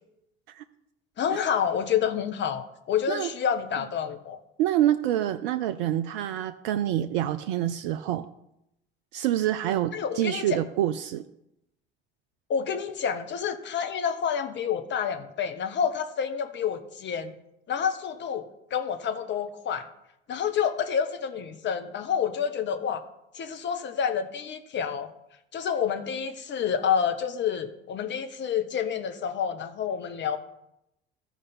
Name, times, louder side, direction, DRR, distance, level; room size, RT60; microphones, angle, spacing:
voice 1, 1.2-4.4 9.9-10.6 12.5-17.3 17.7-18.4 18.7-19.9 20.3-23.1 23.3-25.1 25.5-30.4, left 7 dB, 35° left, 8 dB, 0.9 m, -28 dB
voice 2, 4.6-8.3 9.1-11.2, right 12 dB, 60° right, 10 dB, 0.5 m, -26 dB
14.0 x 5.0 x 4.2 m, 0.83 s
figure-of-eight pair, 55°, 30 cm